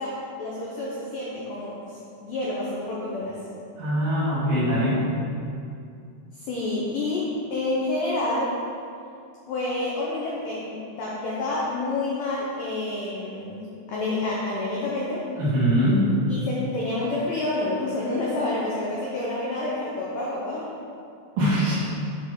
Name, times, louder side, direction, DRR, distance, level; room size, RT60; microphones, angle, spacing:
voice 1, 0.0-3.4 6.3-8.6 9.5-15.3 16.3-20.7, left 2 dB, 85° left, -5 dB, 1.9 m, -29 dB
voice 2, 3.8-5.0 15.4-16.0 21.4-21.8, equal, 50° right, -9 dB, 3.4 m, -22 dB
9.2 x 3.8 x 6.3 m, 2.5 s
omnidirectional pair, 5.4 m